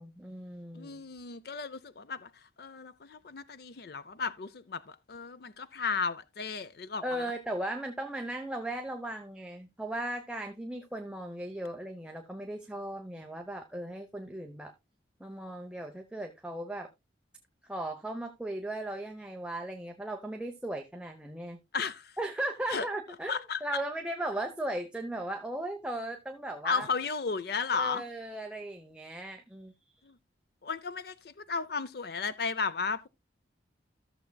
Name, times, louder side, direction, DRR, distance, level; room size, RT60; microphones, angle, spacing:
voice 1, 0.0-1.1 7.0-14.7 15.2-16.9 17.7-21.6 22.2-26.9 27.8-30.1, right 1 dB, 5° right, 0.7 m, -37 dB
voice 2, 0.7-2.3 2.6-7.2 21.7-22.1 22.7-22.9 23.3-23.6 26.6-28.0 30.6-33.1, left 5 dB, 55° left, 0.5 m, -34 dB
14.0 x 7.1 x 2.2 m
head